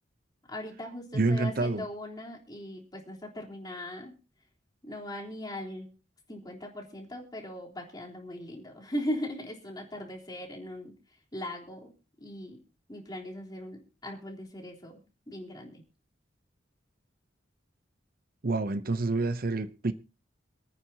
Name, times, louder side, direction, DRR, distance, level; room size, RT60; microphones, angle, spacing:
voice 1, 0.5-4.1 4.8-5.9 6.3-10.9 11.3-11.9 12.2-12.6 12.9-15.0 15.3-15.8, left 1 dB, 20° left, 3.6 m, -39 dB
voice 2, 1.1-1.8 18.4-19.9, right 3 dB, 50° right, 0.8 m, -28 dB
27.0 x 9.4 x 2.9 m
head